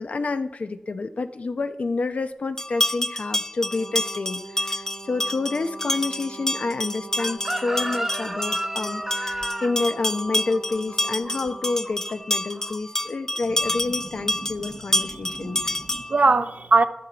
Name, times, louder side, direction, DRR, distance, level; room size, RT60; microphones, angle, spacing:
voice 1, 0.0-15.7, left 3 dB, 80° left, 0.8 m, -29 dB
sound 1, 2.6-16.2, left 1 dB, 20° left, 0.5 m, -28 dB
Brass instrument, 3.6-12.3, right 4 dB, 85° right, 1.7 m, -43 dB
Chicken rooster, 7.2-12.1 12.4-12.8, right 1 dB, 15° right, 0.7 m, -32 dB
voice 2, 14.4-14.7 15.1-16.8, right 3 dB, 70° right, 0.7 m, -22 dB
12.0 x 10.5 x 4.0 m
wide cardioid pair, 70°, 2 cm